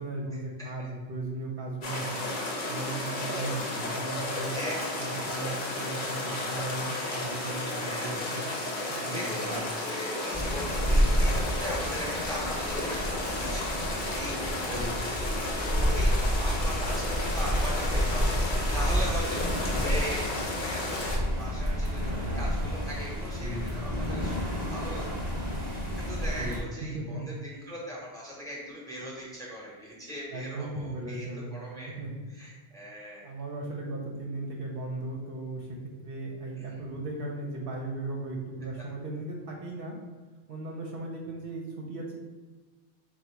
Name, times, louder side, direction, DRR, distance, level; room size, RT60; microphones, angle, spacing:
voice 1, 0.0-2.3 2.7-4.5 5.0-8.5 8.9-9.6 14.7-15.0 23.4-23.7 26.4-26.6 26.9-27.4 30.3-31.5 32.0-32.1 33.2-35.8 36.0-40.0 40.5-42.1, right 2 dB, 65° right, -1 dB, 0.8 m, -37 dB
sound 1, 1.8-21.2, left 2 dB, 55° left, 0.8 m, -33 dB
voice 2, 4.5-5.8 7.8-8.3 8.6-25.1 25.4-31.9 32.3-33.3, equal, 5° left, -5 dB, 0.9 m, -40 dB
sound 2, 10.3-26.6, equal, 25° right, 1.0 m, -29 dB
3.9 x 2.2 x 4.5 m, 1.3 s
omnidirectional pair, 1.1 m